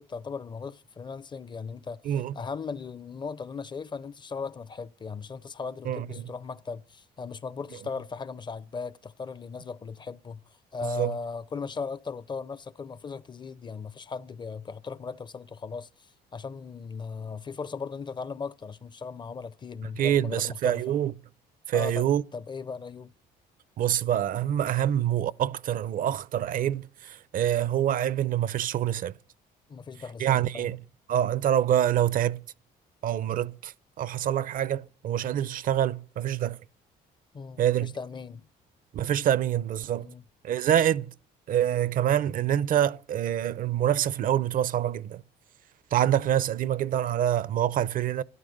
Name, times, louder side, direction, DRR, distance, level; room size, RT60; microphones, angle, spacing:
voice 1, 0.0-20.8 21.7-23.1 29.7-30.7 37.3-38.5 40.0-40.2, left 5 dB, 25° left, 0.5 m, -38 dB
voice 2, 5.9-6.3 10.8-11.1 20.0-21.1 21.7-22.2 23.8-29.1 30.2-30.8 31.1-32.4 33.0-36.6 37.6-37.9 38.9-40.1 40.4-41.1 41.5-45.2 45.9-48.2, right 10 dB, 55° right, 0.5 m, -26 dB
12.5 x 11.5 x 6.5 m
cardioid pair, 110°, 17 cm